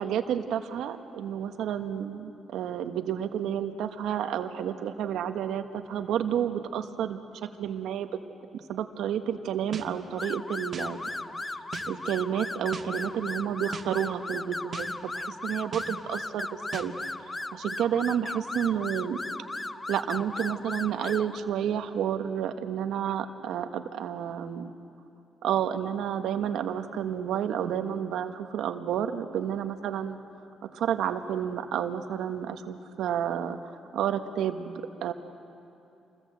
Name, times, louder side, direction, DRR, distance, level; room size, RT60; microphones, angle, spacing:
voice 1, 0.0-7.2 7.6-8.1 8.5-11.0 11.9-16.5 16.7-16.9 17.5-19.2 19.9-24.7 25.4-30.2 30.7-33.6 33.9-35.1, right 9 dB, 80° right, 7 dB, 1.4 m, -30 dB
sound 1, 9.7-9.9 10.7-10.9 11.7-11.9 12.7-12.9 13.7-13.9 14.7-14.9 15.7-15.9 16.7-16.9, right 6 dB, 45° right, 1.8 m, -38 dB
sound 2, 10.2-21.4, left 2 dB, 20° left, 0.8 m, -36 dB
27.5 x 21.5 x 7.9 m, 2.7 s
cardioid pair, 90°, 0 cm